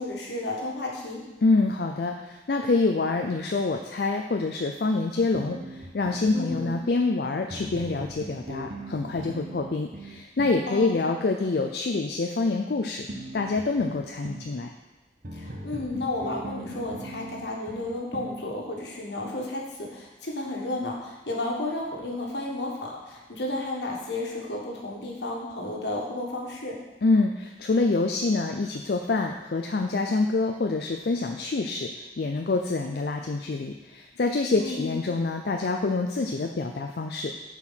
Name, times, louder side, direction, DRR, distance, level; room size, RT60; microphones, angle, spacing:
voice 1, 0.0-1.3 6.3-6.8 10.7-11.0 15.3-26.8 34.6-35.0, left 2 dB, 80° left, -2 dB, 1.6 m, -32 dB
voice 2, 1.4-13.1 13.3-14.7 27.0-37.3, left 3 dB, 60° left, 3 dB, 0.5 m, -26 dB
sound 1, 5.3-6.8 7.5-10.7 13.1-14.5 15.2-18.4, right 1 dB, 50° right, 0.9 m, -39 dB
7.6 x 4.6 x 5.8 m, 1.1 s
head